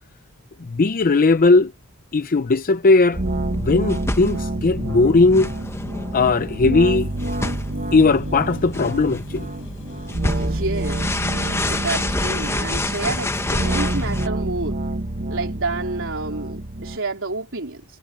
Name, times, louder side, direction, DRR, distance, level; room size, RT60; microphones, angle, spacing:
voice 1, 0.6-1.7 2.1-3.2 3.5-5.5 6.1-7.1 7.9-9.5, left 3 dB, 40° left, 0.5 m, -17 dB
sound 1, 3.1-14.3, left 2 dB, 10° left, 1.0 m, -29 dB
sound 2, 3.1-17.0, right 1 dB, 40° right, 1.3 m, -28 dB
sound 3, 6.8-11.8, left 1 dB, 65° left, 5.8 m, -43 dB
voice 2, 10.3-14.8 15.3-17.8, right 3 dB, 60° right, 4.1 m, -29 dB
head